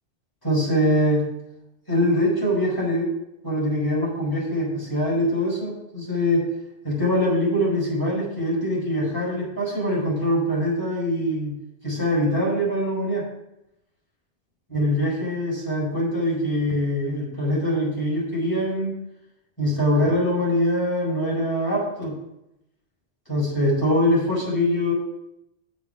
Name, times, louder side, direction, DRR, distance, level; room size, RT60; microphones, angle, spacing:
voice 1, 0.4-1.3 1.9-3.1 3.4-6.4 6.8-11.5 11.8-13.2 14.7-18.9 19.6-22.2 23.3-24.9, equal, 20° left, -5 dB, 4.7 m, -23 dB
8.2 x 7.6 x 5.7 m, 0.87 s
omnidirectional pair, 1.1 m